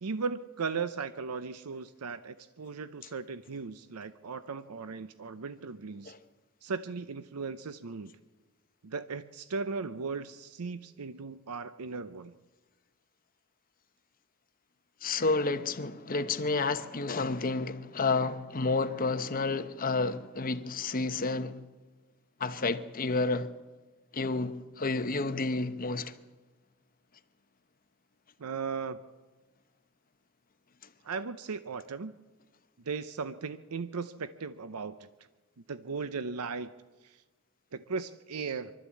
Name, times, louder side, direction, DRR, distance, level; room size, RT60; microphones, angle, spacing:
voice 1, 0.0-6.1 6.6-8.1 8.8-12.3 28.4-29.0 31.0-32.2 32.8-35.1 35.7-36.7 37.0-37.2 37.7-38.7, right 5 dB, 85° right, 0.7 m, -37 dB
voice 2, 15.0-21.6 22.4-23.5 24.1-26.1, left 3 dB, 40° left, 0.9 m, -30 dB
24.5 x 13.0 x 8.4 m
head